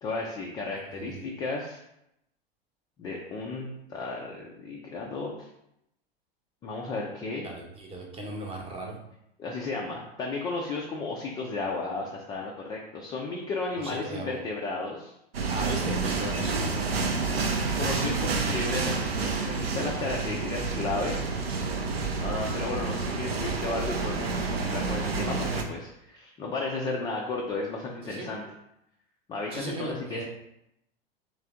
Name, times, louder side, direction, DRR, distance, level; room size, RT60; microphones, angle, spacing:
voice 1, 0.0-1.8 3.0-5.5 6.6-7.5 9.4-15.1 17.3-21.1 22.2-28.4 29.3-30.2, left 3 dB, 15° left, -1 dB, 0.3 m, -34 dB
voice 2, 0.9-1.2 7.4-9.0 13.8-14.3 15.5-17.1 28.0-28.3 29.5-30.2, right 2 dB, 20° right, 0 dB, 0.9 m, -37 dB
sound 1, 15.3-25.6, right 4 dB, 75° right, 0.6 m, -29 dB
3.3 x 3.3 x 3.6 m, 0.81 s
figure-of-eight pair, 90°, 31 cm